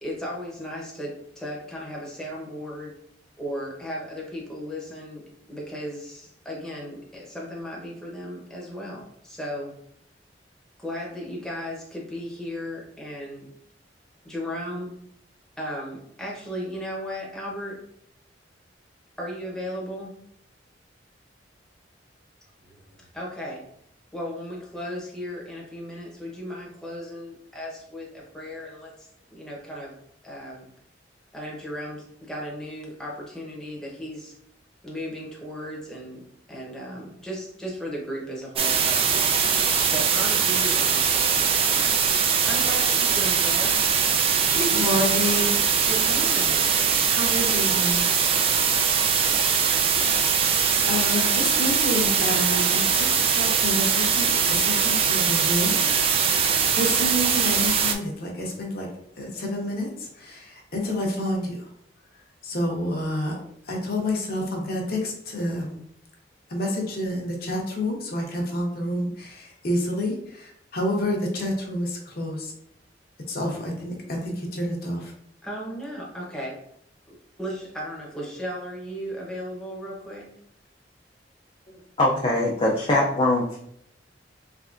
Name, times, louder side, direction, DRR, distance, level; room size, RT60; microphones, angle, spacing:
voice 1, 0.0-2.9 3.4-5.2 5.5-9.8 10.8-13.5 14.2-14.9 15.6-17.8 19.2-20.1 22.6-23.6 24.1-30.0 30.2-30.7 31.3-34.4 34.8-36.2 36.5-42.0 42.4-43.9 44.5-45.2 45.9-46.7 75.4-76.6 77.1-80.3, equal, 5° left, -4 dB, 0.8 m, -36 dB
sound 1, 38.6-57.9, right 7 dB, 30° right, 0.3 m, -22 dB
voice 2, 44.5-45.7 47.2-48.0 50.9-55.8 56.1-56.5 56.7-58.9 59.2-61.7 62.4-63.4 63.7-65.8 66.5-72.5 73.3-75.1, left 1 dB, 55° left, 0 dB, 0.8 m, -28 dB
voice 3, 82.0-83.6, left 1 dB, 30° left, -3 dB, 0.4 m, -22 dB
3.5 x 3.3 x 2.5 m, 0.71 s
head